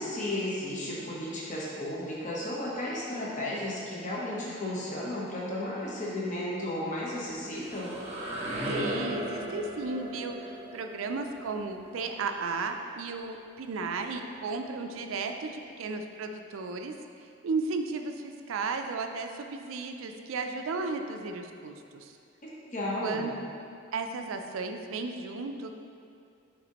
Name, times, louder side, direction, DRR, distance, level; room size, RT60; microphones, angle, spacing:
voice 1, 0.0-7.9 22.4-23.3, left 1 dB, 35° left, -5 dB, 0.9 m, -34 dB
sound 1, 7.3-13.1, right 1 dB, 30° right, 0.8 m, -37 dB
voice 2, 8.7-22.2 23.0-23.3 23.9-25.7, right 3 dB, 80° right, 5 dB, 0.4 m, -34 dB
9.0 x 3.6 x 2.9 m, 2.4 s
head